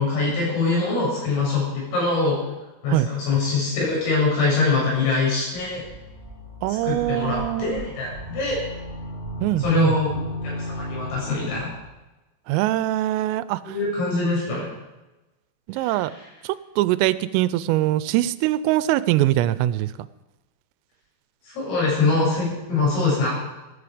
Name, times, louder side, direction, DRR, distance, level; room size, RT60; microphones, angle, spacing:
voice 1, 0.0-2.4 2.8-5.8 6.8-8.6 9.6-10.1 10.4-11.7 13.6-14.7 15.8-16.0 21.5-23.3, left 3 dB, 85° left, -4 dB, 9.7 m, -23 dB
sound 1, 5.5-11.9, equal, 15° right, 7.5 m, -35 dB
voice 2, 6.6-7.8 9.4-10.0 12.5-13.8 15.7-16.1 16.4-20.1, right 15 dB, 90° right, 16 dB, 3.3 m, -22 dB
15.0 x 14.5 x 5.1 m, 1.0 s
omnidirectional pair, 5.8 m